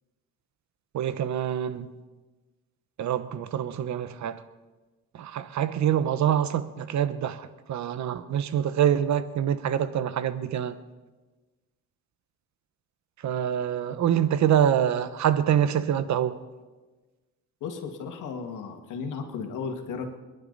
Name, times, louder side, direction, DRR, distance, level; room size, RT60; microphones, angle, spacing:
voice 1, 0.9-1.9 3.0-4.4 5.1-10.8 13.2-16.4, right 9 dB, 65° right, 13 dB, 1.0 m, -25 dB
voice 2, 17.6-20.2, left 5 dB, 85° left, 4 dB, 2.1 m, -35 dB
26.5 x 11.0 x 4.1 m, 1.2 s
cardioid pair, 90°, 30 cm